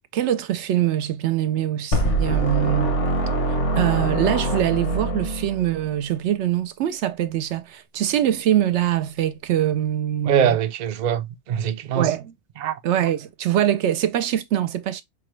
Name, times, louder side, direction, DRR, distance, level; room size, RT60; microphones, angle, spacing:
voice 1, 0.1-3.0 3.8-10.6 11.9-12.3 12.8-15.0, right 11 dB, 75° right, 0.8 m, -23 dB
sound 1, 1.9-5.9, right 2 dB, 75° left, 1.3 m, -24 dB
voice 2, 10.3-12.1 12.6-12.8, right 8 dB, 55° right, 0.5 m, -23 dB
5.0 x 2.2 x 3.0 m
omnidirectional pair, 1.2 m